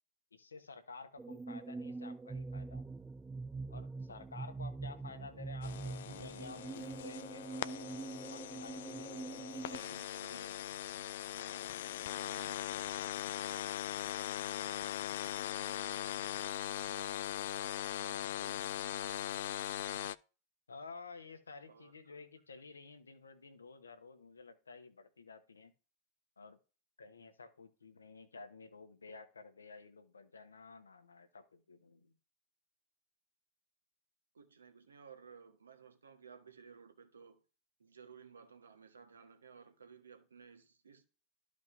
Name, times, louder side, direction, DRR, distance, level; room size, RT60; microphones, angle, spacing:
voice 1, 0.3-2.8 3.7-7.9 8.3-10.6 20.7-25.7 26.4-26.6 27.0-32.1, left 4 dB, 75° left, 1.1 m, -52 dB
sound 1, 1.2-9.8, right 3 dB, 10° right, 0.4 m, -44 dB
sound 2, 5.6-20.1, left 12 dB, 55° left, 0.3 m, -40 dB
voice 2, 6.0-6.7 7.3-7.4 9.7-10.3 18.0-18.7 19.2-19.5 21.7-22.2 34.3-37.4 37.8-41.0, right 6 dB, 70° right, 1.3 m, -57 dB
13.0 x 5.1 x 2.6 m
figure-of-eight pair, 90°, 0 cm